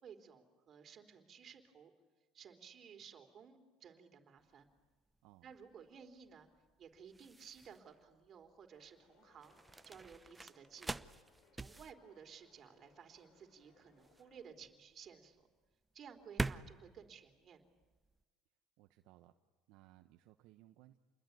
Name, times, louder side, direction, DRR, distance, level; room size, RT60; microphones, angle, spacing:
voice 1, 0.0-1.9 2.3-4.7 5.4-6.5 6.8-9.6 9.8-11.1 11.6-15.5 15.9-17.6, right 7 dB, 40° right, 4 dB, 3.5 m, -56 dB
sound 1, 4.4-18.2, right 3 dB, 10° right, 0.8 m, -47 dB
voice 2, 5.2-5.5 18.8-19.3 19.7-21.0, right 15 dB, 75° right, 6 dB, 1.1 m, -63 dB
sound 2, 8.7-14.4, left 5 dB, 55° left, 5.1 m, -72 dB
28.5 x 21.5 x 9.5 m, 1.3 s
supercardioid pair, 115°, 0 cm